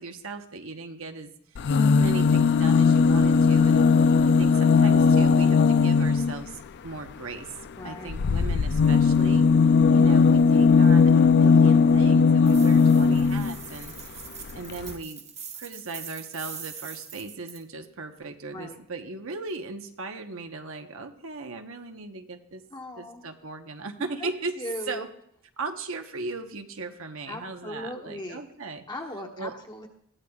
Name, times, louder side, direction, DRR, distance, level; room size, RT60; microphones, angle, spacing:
voice 1, 0.0-1.6 2.0-3.8 4.3-7.5 7.8-9.5 9.9-14.2 14.5-15.2 15.5-22.6 23.0-25.1 25.6-28.8 29.4-29.6, right 3 dB, 65° right, 6 dB, 1.1 m, -37 dB
sound 1, 1.6-6.4 8.1-13.6 14.5-14.6 14.8-14.9, left 5 dB, 50° left, 0.4 m, -18 dB
voice 2, 7.8-8.2 18.5-18.8 22.7-23.3 24.2-24.3 24.6-25.0 27.3-28.4 28.9-29.9, left 1 dB, 20° left, 1 dB, 1.4 m, -38 dB
sound 2, 12.5-17.6, right 7 dB, 30° right, 1.2 m, -42 dB
21.0 x 15.5 x 2.4 m, 0.71 s
head